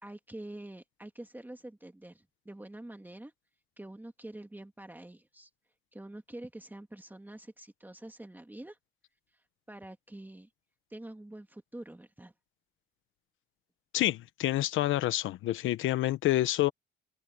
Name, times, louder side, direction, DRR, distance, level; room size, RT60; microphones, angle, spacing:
voice 1, 0.0-3.3 3.8-5.5 5.9-8.8 9.3-10.5 10.9-12.3, right 1 dB, 10° right, 2.3 m, -46 dB
voice 2, 13.9-16.7, left 15 dB, 85° left, 1.1 m, -28 dB
cardioid pair, 90°, 20 cm